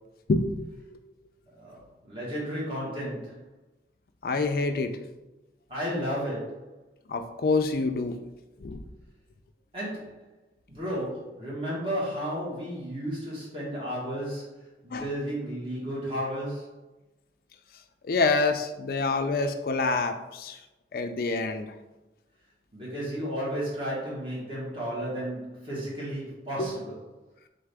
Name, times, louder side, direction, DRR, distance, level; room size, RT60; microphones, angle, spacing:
voice 1, 1.6-3.5 5.7-6.7 9.7-10.2 10.7-16.8 22.7-27.0, equal, 30° right, -7 dB, 1.4 m, -33 dB
voice 2, 4.2-4.9 7.1-8.2 8.6-8.8 14.9-15.0 18.0-20.6 20.9-21.7 26.6-26.7, left 3 dB, 55° left, 7 dB, 0.4 m, -26 dB
3.9 x 3.7 x 3.4 m, 1.0 s
head